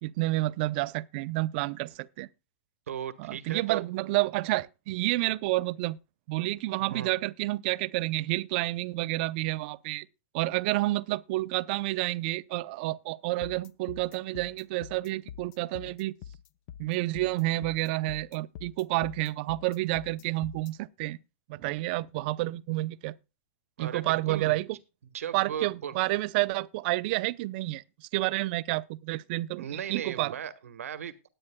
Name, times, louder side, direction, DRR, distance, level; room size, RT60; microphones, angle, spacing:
voice 1, 0.0-2.3 3.2-6.0 6.3-10.1 10.3-16.1 16.8-21.2 21.5-23.1 23.8-24.7 25.3-27.8 28.1-30.3, right 19 dB, 45° right, 0.5 m, -29 dB
voice 2, 2.9-3.9 6.8-7.1 23.8-24.6 25.1-26.0 29.6-31.3, right 9 dB, 90° right, 1.2 m, -37 dB
sound 1, 13.4-20.7, left 10 dB, 45° left, 0.7 m, -45 dB
20.0 x 8.7 x 2.2 m
hypercardioid pair, 145°, 7 cm